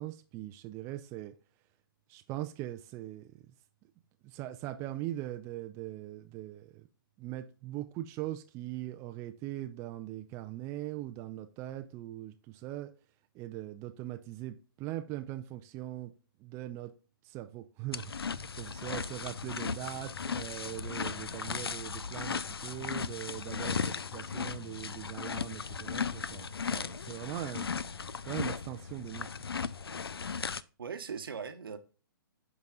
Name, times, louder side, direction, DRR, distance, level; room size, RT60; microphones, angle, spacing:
voice 1, 0.0-1.3 2.1-3.2 4.2-6.9 7.2-12.9 13.3-16.1 16.4-16.9 17.2-27.7 28.3-29.6, right 14 dB, 20° right, 0.4 m, -41 dB
sound 1, 17.9-30.6, left 5 dB, 85° left, 0.4 m, -36 dB
voice 2, 30.8-31.8, right 6 dB, 70° right, 1.0 m, -40 dB
10.5 x 4.0 x 2.4 m
figure-of-eight pair, 130°, 12 cm